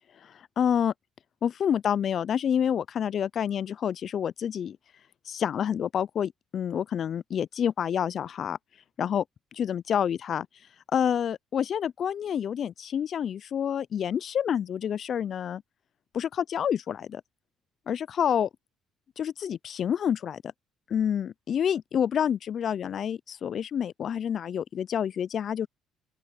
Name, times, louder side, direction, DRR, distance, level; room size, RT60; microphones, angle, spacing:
voice 1, 0.2-0.9 1.4-4.8 5.3-8.6 9.0-9.2 9.6-10.5 10.9-15.6 16.1-17.2 17.9-18.5 19.2-20.4 20.9-25.7, left 8 dB, 50° left, 0.3 m, -28 dB
open air
cardioid pair, 105°, 0 cm